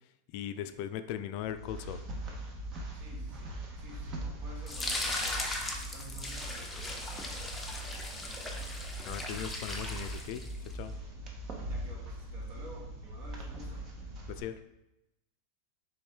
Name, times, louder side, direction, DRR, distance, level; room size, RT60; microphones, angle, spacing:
voice 1, 0.3-2.0 9.1-10.5 10.7-10.9 14.3-14.6, left 10 dB, 55° left, 10 dB, 0.3 m, -38 dB
sound 1, 1.3-14.4, right 1 dB, 40° right, 0.9 m, -41 dB
voice 2, 2.9-8.6 11.7-13.8, right 1 dB, 55° right, -1 dB, 1.4 m, -52 dB
sound 2, 4.7-10.7, left 2 dB, 10° left, 0.7 m, -38 dB
3.5 x 3.2 x 4.4 m, 0.93 s
hypercardioid pair, 120°, 0 cm